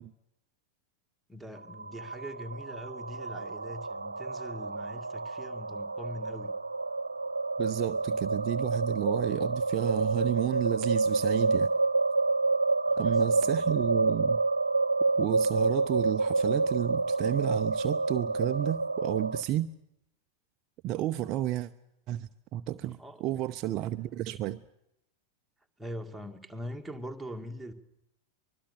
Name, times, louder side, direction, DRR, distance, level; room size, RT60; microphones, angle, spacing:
voice 1, 1.3-6.6 12.8-13.7 23.0-23.4 25.8-27.7, equal, ahead, 2.3 m, -43 dB
sound 1, 1.6-19.4, right 3 dB, 80° right, 1.1 m, -29 dB
voice 2, 7.6-11.7 13.0-14.4 15.2-19.7 20.8-21.7 22.1-24.6, right 13 dB, 35° right, 0.8 m, -31 dB
24.5 x 22.0 x 6.9 m
figure-of-eight pair, 90°, 0 cm